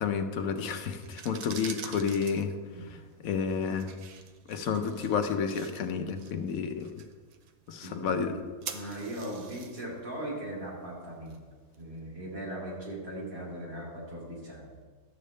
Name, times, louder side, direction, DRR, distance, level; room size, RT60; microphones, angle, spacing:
voice 1, 0.0-2.5 3.2-3.9 4.5-6.9 7.7-8.3, left 6 dB, 70° left, 7 dB, 1.1 m, -30 dB
sound 1, 0.9-11.8, right 7 dB, 85° right, 1.2 m, -47 dB
voice 2, 7.8-8.4 8.7-11.4 11.7-14.8, right 1 dB, 65° right, -5 dB, 2.7 m, -39 dB
12.0 x 7.6 x 3.2 m, 1.5 s
omnidirectional pair, 1.6 m